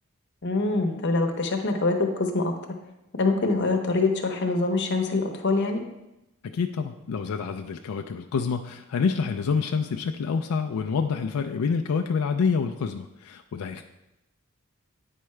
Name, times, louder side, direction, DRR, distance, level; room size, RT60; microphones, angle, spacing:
voice 1, 0.4-2.5 3.2-5.8, left 3 dB, 55° left, 4 dB, 0.8 m, -24 dB
voice 2, 6.4-13.8, left 5 dB, 90° left, 4 dB, 0.4 m, -27 dB
8.8 x 4.6 x 3.2 m, 0.92 s
head